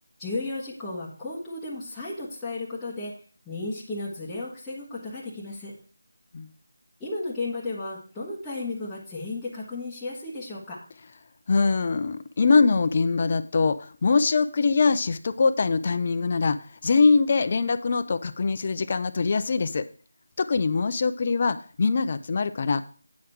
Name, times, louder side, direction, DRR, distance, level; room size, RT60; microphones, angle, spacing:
voice 1, 0.2-3.1 3.4-5.7 7.0-10.8, left 2 dB, 5° left, -9 dB, 1.5 m, -34 dB
voice 2, 11.5-19.9 20.4-22.8, left 4 dB, 35° left, 10 dB, 0.5 m, -23 dB
8.6 x 4.9 x 5.8 m, 0.40 s
figure-of-eight pair, 170°, 0 cm